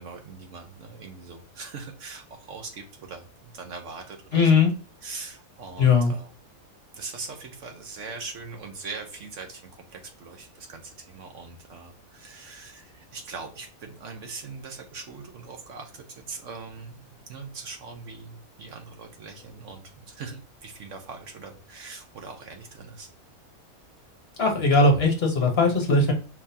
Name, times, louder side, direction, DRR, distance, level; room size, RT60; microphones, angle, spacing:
voice 1, 0.0-4.6 5.0-6.3 6.9-23.1, right 4 dB, 60° right, 5 dB, 1.1 m, -41 dB
voice 2, 4.3-4.7 5.8-6.1 24.4-26.1, left 3 dB, 50° left, 2 dB, 1.1 m, -19 dB
4.7 x 3.6 x 2.7 m, 0.36 s
omnidirectional pair, 1.5 m